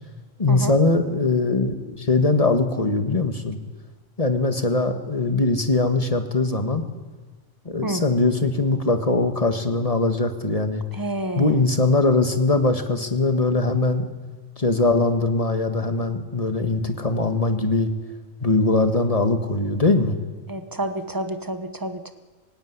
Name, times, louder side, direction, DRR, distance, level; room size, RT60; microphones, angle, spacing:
voice 1, 0.4-3.6 4.2-6.8 7.6-10.8 11.3-14.1 14.6-17.9 18.4-20.2, left 3 dB, 30° left, 7 dB, 1.7 m, -21 dB
voice 2, 10.9-11.5 20.5-22.1, right 1 dB, 15° right, 9 dB, 1.3 m, -29 dB
25.0 x 16.5 x 9.8 m, 1.3 s
omnidirectional pair, 1.4 m